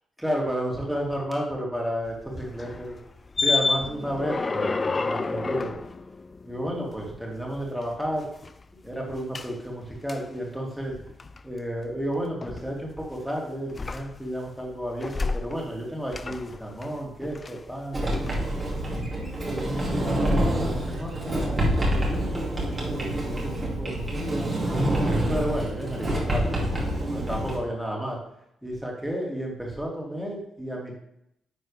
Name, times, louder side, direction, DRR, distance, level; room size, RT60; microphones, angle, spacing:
voice 1, 0.2-3.0 3.4-5.7 6.4-8.3 8.8-11.0 11.4-18.4 19.5-24.5 25.3-26.8 27.1-28.2 28.6-31.0, equal, 5° right, -2 dB, 2.7 m, -32 dB
sound 1, 2.1-7.1 7.5-8.6 9.3-9.5 10.1-10.2 10.9-11.4 12.4-13.2 13.7-14.5 14.8-15.8 16.1-17.8 18.1-18.4, left 3 dB, 30° left, 0.3 m, -30 dB
Sliding door, 17.9-27.6, right 1 dB, 30° right, 2.5 m, -27 dB
10.5 x 4.0 x 3.3 m, 0.78 s
supercardioid pair, 65°, 0 cm